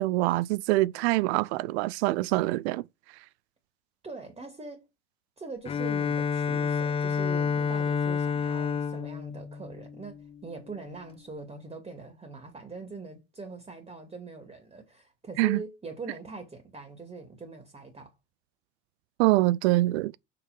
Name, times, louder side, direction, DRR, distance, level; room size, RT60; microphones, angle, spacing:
voice 1, 0.0-2.8 15.4-15.6 19.2-20.1, right 18 dB, 65° right, 0.5 m, -24 dB
voice 2, 4.0-4.9 5.4-18.1, right 3 dB, 15° right, 2.7 m, -42 dB
Bowed string instrument, 5.6-10.4, left 6 dB, 15° left, 0.4 m, -29 dB
6.4 x 5.8 x 5.3 m
hypercardioid pair, 85°, 35 cm